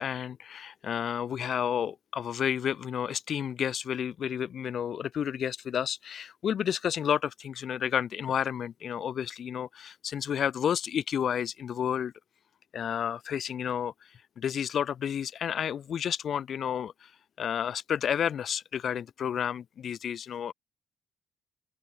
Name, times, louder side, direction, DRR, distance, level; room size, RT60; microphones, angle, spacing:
voice 1, 0.0-12.1 12.7-13.9 14.4-16.9 17.4-20.5, left 8 dB, 55° left, 7.1 m, -31 dB
open air
figure-of-eight pair, 45°, 0 cm